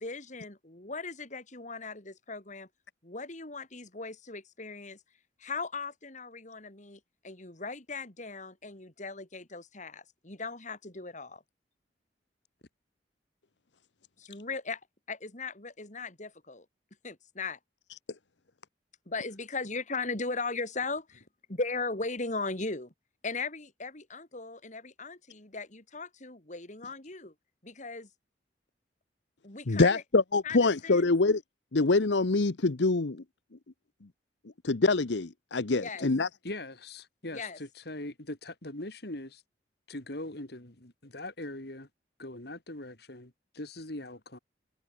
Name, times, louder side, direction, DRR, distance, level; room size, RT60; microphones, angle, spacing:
voice 1, 0.0-2.7 3.0-5.0 5.4-11.4 14.2-14.8 15.1-16.7 17.0-17.6 19.1-22.9 23.2-27.3 27.6-28.1 29.4-30.0 30.4-31.0 35.7-36.1 37.3-37.6, left 3 dB, 45° left, 3.7 m, -38 dB
voice 2, 29.7-31.4 31.7-33.2 34.6-36.3, left 3 dB, 80° left, 0.9 m, -25 dB
voice 3, 36.4-39.4 39.9-41.9 42.2-44.4, left 1 dB, 65° left, 3.4 m, -41 dB
head